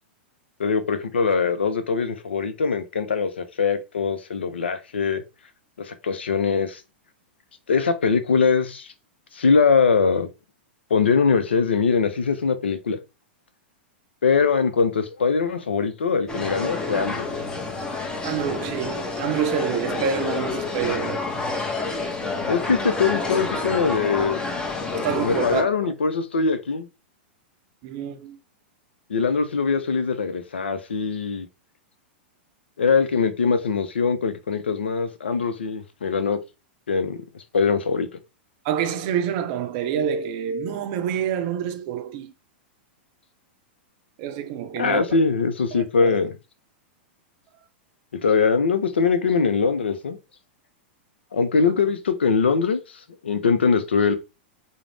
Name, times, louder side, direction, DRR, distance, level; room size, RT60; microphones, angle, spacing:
voice 1, 0.6-5.2 5.8-6.8 7.7-8.9 9.3-10.3 10.9-13.0 14.2-17.4 22.5-24.4 25.2-26.9 29.1-31.5 32.8-36.4 36.9-38.1 44.8-46.3 48.2-50.2 51.3-52.8 53.2-54.2, left 5 dB, 75° left, 0.5 m, -22 dB
sound 1, 16.3-25.6, left 3 dB, 15° left, 0.6 m, -28 dB
voice 2, 18.2-21.3 24.9-25.9 27.8-28.4 38.6-42.3 44.2-45.1 45.7-46.2, right 8 dB, 45° right, 0.5 m, -27 dB
2.5 x 2.0 x 3.2 m
figure-of-eight pair, 100°, 6 cm